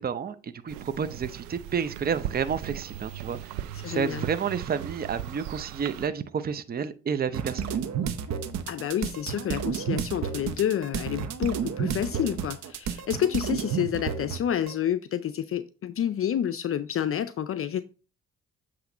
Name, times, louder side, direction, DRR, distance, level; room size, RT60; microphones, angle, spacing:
voice 1, 0.0-7.8, right 7 dB, 30° right, 0.6 m, -30 dB
sound 1, 0.7-6.1, right 11 dB, 85° right, 0.5 m, -38 dB
voice 2, 3.7-4.2 8.7-17.8, left 10 dB, 50° left, 0.5 m, -29 dB
sound 2, 7.3-14.7, right 7 dB, 60° right, 0.8 m, -31 dB
8.0 x 3.1 x 5.0 m
supercardioid pair, 60°, 30 cm